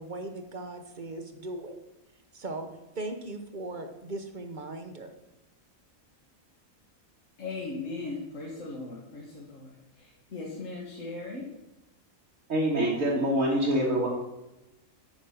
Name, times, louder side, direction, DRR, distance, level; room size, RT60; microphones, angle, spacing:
voice 1, 0.0-1.7 2.3-2.7 3.0-5.1, right 2 dB, 40° right, 6 dB, 1.0 m, -38 dB
voice 2, 7.4-11.5, left 3 dB, 60° left, -4 dB, 1.9 m, -38 dB
voice 3, 12.5-14.1, right 1 dB, 70° right, -4 dB, 2.2 m, -25 dB
9.1 x 6.3 x 5.7 m, 0.97 s
omnidirectional pair, 1.4 m